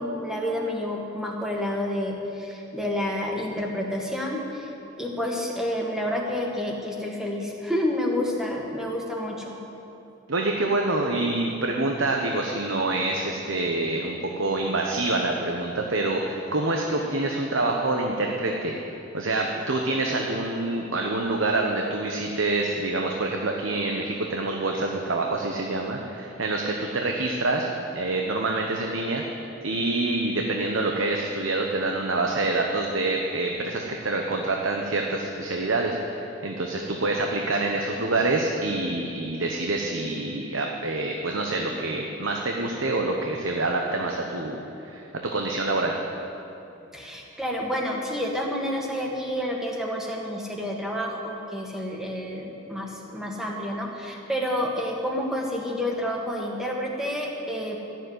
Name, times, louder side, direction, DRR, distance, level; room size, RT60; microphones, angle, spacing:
voice 1, 0.0-4.7 5.0-9.6 46.9-57.8, left 1 dB, 5° right, -1 dB, 1.6 m, -29 dB
voice 2, 10.3-18.7 19.1-27.7 27.9-29.2 29.6-46.0, right 2 dB, 75° right, 1 dB, 1.0 m, -26 dB
13.5 x 7.4 x 9.5 m, 2.9 s
head